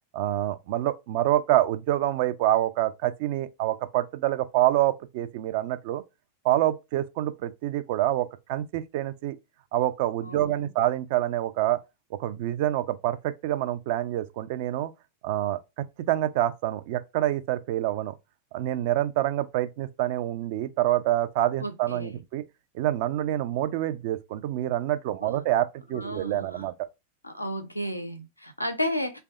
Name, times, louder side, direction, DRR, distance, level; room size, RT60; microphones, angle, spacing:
voice 1, 0.1-6.0 6.4-9.4 9.7-11.8 12.2-14.9 15.2-18.1 18.5-22.4 22.7-26.7, right 13 dB, 50° right, 0.4 m, -26 dB
voice 2, 10.2-10.7 21.6-22.2 25.1-25.4 25.9-26.7 27.2-29.2, equal, 85° left, 0.5 m, -33 dB
3.3 x 2.3 x 3.6 m
figure-of-eight pair, 90°, 0 cm